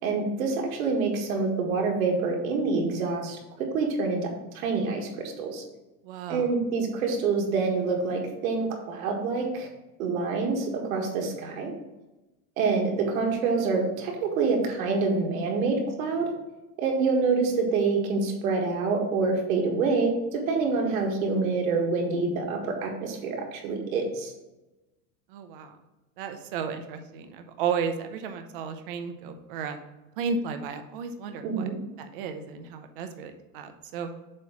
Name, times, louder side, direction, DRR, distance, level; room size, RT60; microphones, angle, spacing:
voice 1, 0.0-4.3 4.5-5.6 6.3-9.7 10.0-11.7 12.6-16.3 16.8-24.3 31.4-31.8, right 4 dB, 65° right, 1 dB, 1.7 m, -26 dB
voice 2, 6.0-6.5 25.3-25.8 26.2-29.8 30.2-31.7 32.0-34.1, right 6 dB, 40° right, 7 dB, 0.6 m, -33 dB
7.4 x 3.0 x 5.8 m, 1.0 s
supercardioid pair, 170°, 44 cm